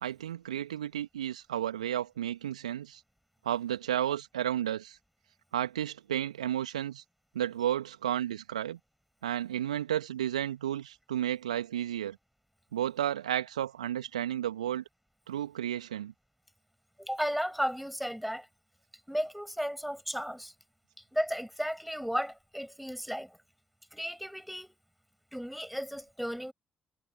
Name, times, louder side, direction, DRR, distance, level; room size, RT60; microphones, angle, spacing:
voice 1, 0.0-3.0 3.4-5.0 5.5-7.0 7.3-8.8 9.2-12.2 12.7-14.8 15.3-16.1, right 11 dB, 80° right, 2.4 m, -32 dB
voice 2, 17.0-18.5 19.1-20.5 21.1-23.3 23.9-24.7 25.3-26.5, equal, ahead, 7.0 m, -34 dB
figure-of-eight pair, 40°, 4 cm